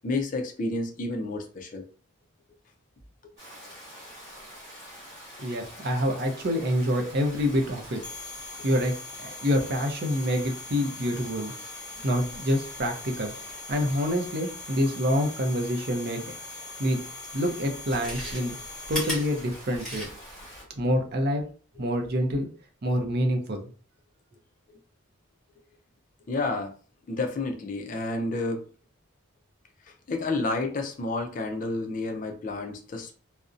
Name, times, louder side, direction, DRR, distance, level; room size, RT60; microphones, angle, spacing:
voice 1, 0.0-1.8 26.3-26.7 27.1-28.6 29.8-33.1, left 2 dB, 40° left, 4 dB, 0.4 m, -30 dB
Stream, 3.4-20.6, equal, 15° right, 1.3 m, -46 dB
voice 2, 5.4-8.0 8.6-8.9 9.2-11.5 12.0-13.3 13.7-16.2 16.8-17.0 17.3-18.5 18.9-20.1 20.8-21.4 21.8-22.5 22.8-23.7, equal, 50° right, 3 dB, 0.5 m, -26 dB
sound 1, 8.0-19.4, left 4 dB, 55° left, 0.9 m, -43 dB
Chewing mastication, 17.7-20.4 20.8-20.9, equal, ahead, 1.0 m, -35 dB
2.5 x 2.0 x 2.4 m, 0.40 s
head